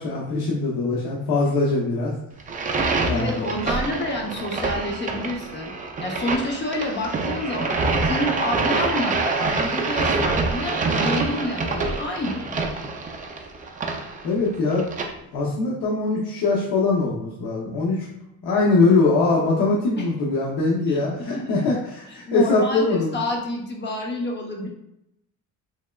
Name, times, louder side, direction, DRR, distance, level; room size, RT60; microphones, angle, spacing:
voice 1, 0.0-2.1 3.0-3.4 14.2-14.9 15.3-18.1 18.4-23.2 24.6-24.7, left 3 dB, 75° left, -4 dB, 0.8 m, -22 dB
sound 1, 2.4-15.1, right 3 dB, 25° right, 0.3 m, -26 dB
voice 2, 3.1-5.7 6.0-7.7 8.0-12.5 20.0-20.1 20.9-21.0 21.3-21.7 22.3-24.7, left 1 dB, 30° left, 0 dB, 0.7 m, -28 dB
3.5 x 3.1 x 2.2 m, 0.83 s
cardioid pair, 130°, 38 cm